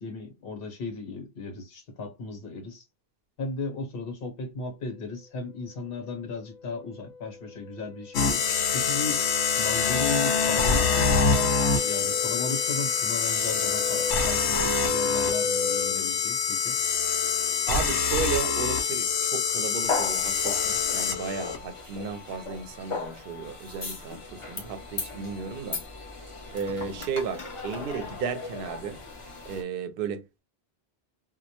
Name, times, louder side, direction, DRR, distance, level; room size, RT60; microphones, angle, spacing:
voice 1, 0.0-2.8 3.4-8.5 8.7-9.2 9.6-11.6 11.8-16.8, left 3 dB, 65° left, 1.0 m, -35 dB
sound 1, 6.1-16.0, left 4 dB, 15° right, 0.7 m, -35 dB
sound 2, 8.1-21.6, left 5 dB, 90° left, 0.8 m, -25 dB
voice 2, 17.7-25.8 26.5-29.0 29.5-30.4, right 6 dB, 65° right, 0.7 m, -34 dB
sound 3, 19.8-29.6, left 3 dB, 35° left, 0.6 m, -37 dB
2.1 x 2.0 x 2.7 m
omnidirectional pair, 1.1 m